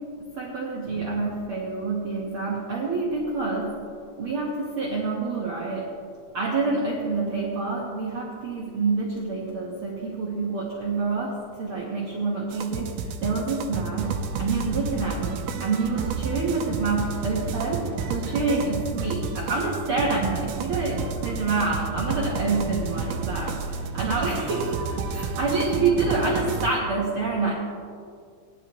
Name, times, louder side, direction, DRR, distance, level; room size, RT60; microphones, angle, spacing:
voice 1, 0.3-3.8 4.2-5.9 6.3-27.5, right 3 dB, 65° right, -4 dB, 1.3 m, -27 dB
sound 1, 12.5-26.7, right 5 dB, 85° right, 2.8 m, -31 dB
19.0 x 11.0 x 3.1 m, 2.2 s
omnidirectional pair, 4.5 m